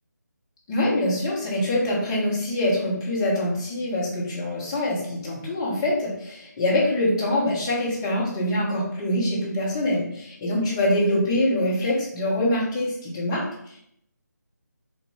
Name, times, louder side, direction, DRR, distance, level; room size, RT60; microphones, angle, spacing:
voice 1, 0.7-13.4, left 1 dB, 15° left, -6 dB, 0.7 m, -24 dB
3.4 x 2.4 x 3.2 m, 0.72 s
figure-of-eight pair, 160°, 10 cm